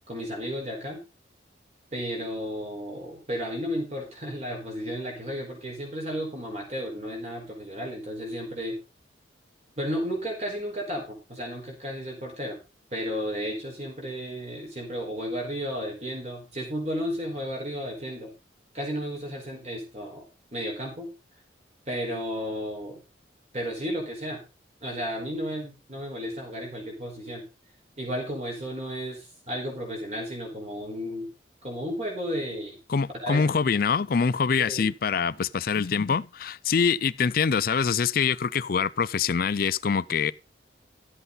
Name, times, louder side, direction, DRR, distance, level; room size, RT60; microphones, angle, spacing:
voice 1, 0.1-1.0 1.9-8.8 9.8-12.6 12.9-18.3 18.7-20.2 20.5-21.1 21.9-23.0 23.5-24.4 24.8-27.4 28.0-31.3 31.6-32.8 33.2-33.5 34.6-34.9, equal, 35° right, 4.6 m, -33 dB
voice 2, 32.9-40.3, left 6 dB, 50° left, 0.4 m, -24 dB
12.5 x 8.0 x 4.0 m
head